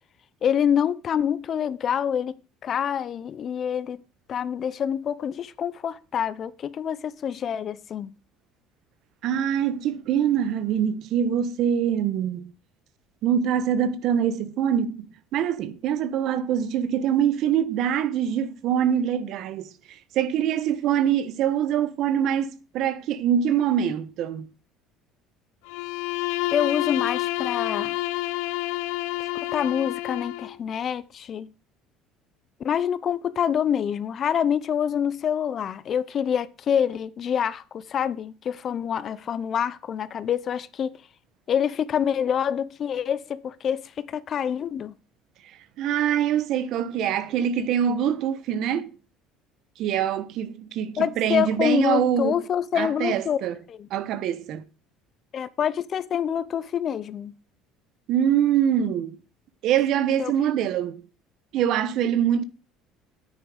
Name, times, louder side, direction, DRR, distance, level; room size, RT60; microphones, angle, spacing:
voice 1, 0.4-2.3 2.6-4.0 4.3-8.1 26.5-27.9 29.5-31.5 32.6-40.9 41.5-44.9 51.0-53.4 53.7-53.9 55.3-57.3 60.2-60.3, left 8 dB, 45° left, 0.8 m, -26 dB
voice 2, 9.2-12.5 13.2-24.5 45.8-48.9 49.8-52.3 52.7-53.6 53.9-54.6 58.1-59.2 59.6-61.0 61.5-62.4, right 9 dB, 60° right, 1.3 m, -24 dB
Bowed string instrument, 25.6-30.6, left 19 dB, 85° left, 0.7 m, -29 dB
9.8 x 9.2 x 5.0 m
cardioid pair, 110°, 0 cm